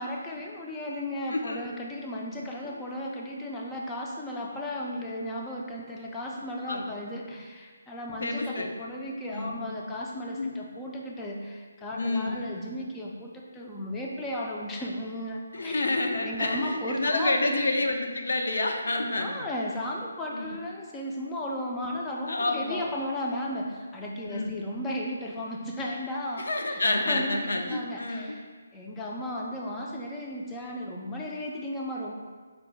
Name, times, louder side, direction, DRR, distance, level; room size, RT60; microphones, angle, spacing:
voice 1, 0.0-15.8 16.2-17.7 19.1-32.1, left 1 dB, 10° left, -2 dB, 0.3 m, -35 dB
voice 2, 1.3-1.7 2.7-2.8 6.7-6.9 8.2-8.7 9.3-9.6 10.4-10.5 12.0-12.4 15.5-19.5 20.3-20.6 21.9-22.0 22.3-22.9 24.3-24.5 26.4-28.4, left 2 dB, 75° left, 3 dB, 0.5 m, -29 dB
4.5 x 2.0 x 3.9 m, 1.5 s
hypercardioid pair, 170°, 0 cm